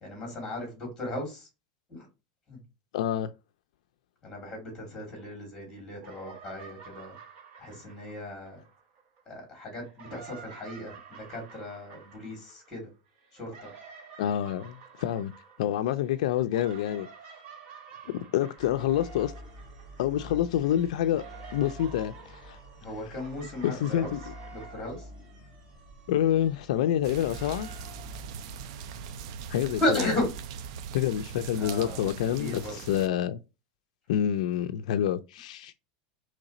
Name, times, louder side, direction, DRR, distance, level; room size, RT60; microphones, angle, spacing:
voice 1, 0.0-1.5 1.9-2.1 2.5-2.6 4.2-7.2 7.6-8.6 9.3-12.9 13.3-13.7 22.8-24.1 24.5-25.1 29.8-30.3 31.5-32.8, left 1 dB, 15° left, 2.2 m, -35 dB
voice 2, 2.9-3.3 14.2-15.3 15.6-17.1 18.1-19.3 20.0-21.2 21.5-22.6 23.6-24.2 26.1-27.7 29.5-30.1 30.9-33.4 34.1-35.7, left 11 dB, 75° left, 0.3 m, -27 dB
sound 1, 5.0-5.7 5.9-9.2 9.7-20.3 20.6-24.7, right 6 dB, 40° right, 1.2 m, -51 dB
sound 2, 18.6-29.5, right 1 dB, 20° right, 2.0 m, -47 dB
sound 3, 27.0-33.1, right 7 dB, 60° right, 0.4 m, -40 dB
3.8 x 3.2 x 4.1 m
supercardioid pair, 165°, 4 cm